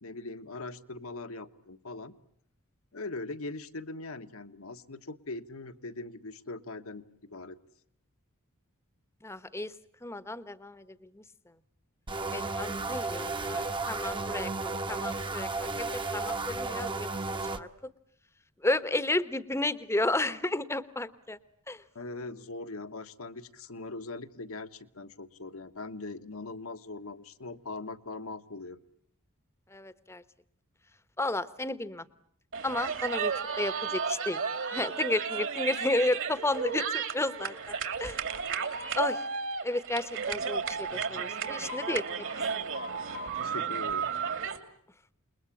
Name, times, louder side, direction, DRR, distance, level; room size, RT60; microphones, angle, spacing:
voice 1, 0.0-2.2 2.9-7.6 21.9-28.8 43.4-44.1, left 2 dB, 65° left, 9 dB, 1.4 m, -41 dB
voice 2, 9.2-9.7 10.0-11.2 12.3-17.1 17.5-17.9 18.6-21.4 21.7-21.8 29.7-30.2 31.2-32.0 32.6-34.4 34.7-38.2 38.9-39.2 39.6-42.3, left 2 dB, 10° left, 14 dB, 1.1 m, -32 dB
sound 1, 12.1-17.6, right 3 dB, 20° right, 1.1 m, -33 dB
sound 2, 32.5-44.6, right 6 dB, 60° right, 2.7 m, -33 dB
28.5 x 22.0 x 8.5 m, 0.67 s
head